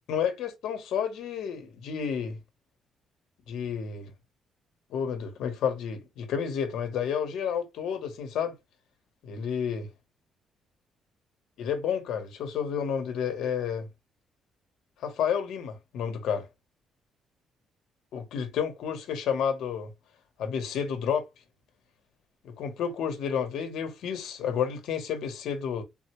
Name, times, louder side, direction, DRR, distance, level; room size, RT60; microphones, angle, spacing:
voice 1, 0.1-2.4 3.5-4.1 4.9-8.5 9.2-9.9 11.6-13.9 15.0-16.5 18.1-19.9 20.4-21.3 22.4-25.8, left 7 dB, 75° left, 0.8 m, -30 dB
3.7 x 2.1 x 2.8 m
cardioid pair, 145°, 0 cm